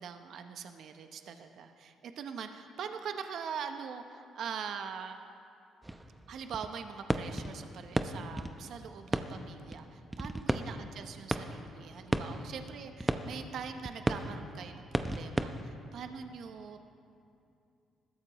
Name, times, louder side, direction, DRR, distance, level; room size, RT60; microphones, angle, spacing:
voice 1, 0.0-5.2 6.3-16.8, right 6 dB, 65° right, 7 dB, 0.8 m, -43 dB
sound 1, 5.8-6.8 7.1-15.6, right 1 dB, 10° right, 0.8 m, -35 dB
21.0 x 14.0 x 3.1 m, 2.6 s
cardioid pair, 80°, 0 cm